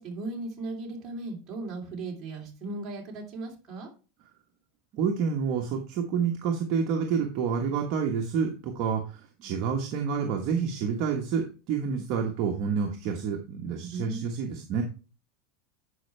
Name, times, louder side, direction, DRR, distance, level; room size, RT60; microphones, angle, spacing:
voice 1, 0.0-3.9 13.9-14.7, right 2 dB, 25° right, -3 dB, 3.3 m, -37 dB
voice 2, 4.9-14.8, right 6 dB, 45° right, 1 dB, 1.2 m, -28 dB
11.5 x 5.3 x 3.3 m, 0.34 s
supercardioid pair, 160°, 0 cm